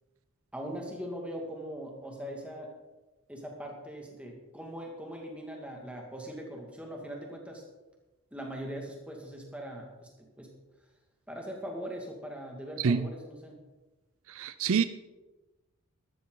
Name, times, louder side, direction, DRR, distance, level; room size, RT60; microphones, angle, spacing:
voice 1, 0.5-2.7 3.3-7.6 8.3-10.5 11.3-13.6, equal, 5° right, 2.0 m, -41 dB
voice 2, 12.8-13.1 14.3-14.9, right 5 dB, 65° right, 0.5 m, -27 dB
13.0 x 12.5 x 3.9 m
head